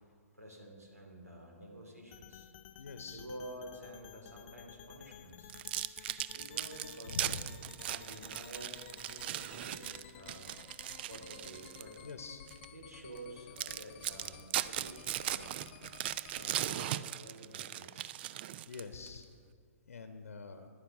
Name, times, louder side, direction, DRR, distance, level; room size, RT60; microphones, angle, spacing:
voice 1, 0.3-2.5 3.1-5.5 6.3-7.4 7.8-10.5 11.0-12.0 12.7-15.6 16.3-18.2, right 1 dB, 90° right, 0 dB, 2.8 m, -50 dB
sound 1, 2.1-17.0, left 11 dB, 40° left, 0.5 m, -54 dB
voice 2, 2.8-3.2 7.1-7.4 12.0-12.4 18.7-19.3 19.9-20.7, left 5 dB, 70° left, 7 dB, 0.9 m, -45 dB
sound 2, 5.5-12.0 12.5-12.7 13.2-13.3 13.6-19.1, right 13 dB, 40° right, 0.4 m, -38 dB
10.5 x 9.8 x 6.5 m, 2.2 s
figure-of-eight pair, 120°, 8 cm